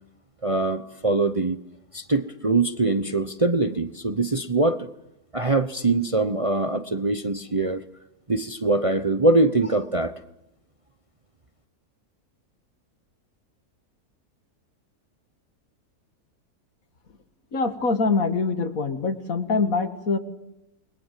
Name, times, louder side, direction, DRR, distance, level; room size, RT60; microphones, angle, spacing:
voice 1, 0.4-1.6 1.9-4.9 5.3-7.8 8.3-10.2, right 2 dB, 25° right, 10 dB, 0.9 m, -23 dB
voice 2, 17.5-20.2, left 4 dB, 65° left, 9 dB, 2.3 m, -24 dB
29.5 x 21.5 x 7.6 m, 0.88 s
omnidirectional pair, 1.6 m